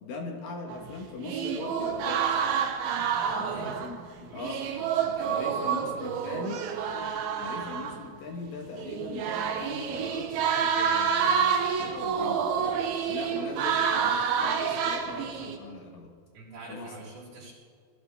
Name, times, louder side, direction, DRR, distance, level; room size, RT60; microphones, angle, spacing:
voice 1, 0.0-2.3 3.4-4.7 5.0-6.7 7.3-16.1 16.7-17.0, left 4 dB, 65° left, 2 dB, 2.3 m, -40 dB
sound 1, 0.7-4.1 4.4-8.0 8.8-15.6, right 7 dB, 75° right, 3.3 m, -28 dB
voice 2, 3.2-3.8 4.3-6.4 16.3-17.5, right 3 dB, 55° right, -12 dB, 5.5 m, -45 dB
21.0 x 14.5 x 3.5 m, 2.1 s
omnidirectional pair, 5.7 m